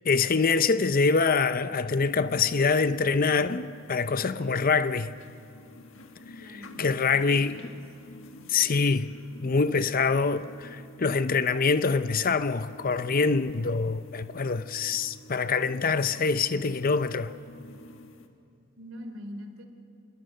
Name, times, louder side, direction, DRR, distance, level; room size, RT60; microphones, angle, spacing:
voice 1, 0.0-5.1 6.8-7.6 8.5-9.1 9.4-17.3, left 4 dB, 45° left, 0.6 m, -25 dB
sound 1, 1.9-18.3, left 1 dB, 65° left, 1.6 m, -50 dB
voice 2, 6.4-7.8 18.8-19.7, equal, 75° right, 3.0 m, -43 dB
27.5 x 21.0 x 6.8 m
head